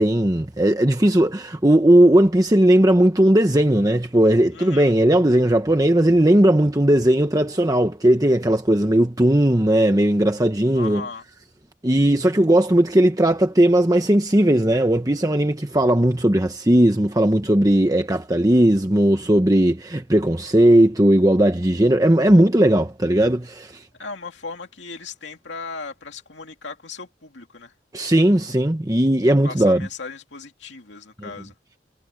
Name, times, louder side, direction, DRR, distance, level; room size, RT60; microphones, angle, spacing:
voice 1, 0.0-11.0 11.8-23.8 27.9-29.9 31.2-31.3, right 1 dB, 20° right, 1.0 m, -17 dB
voice 2, 4.5-4.9 10.7-11.2 24.0-27.7 29.4-31.5, left 4 dB, 80° left, 2.4 m, -37 dB
head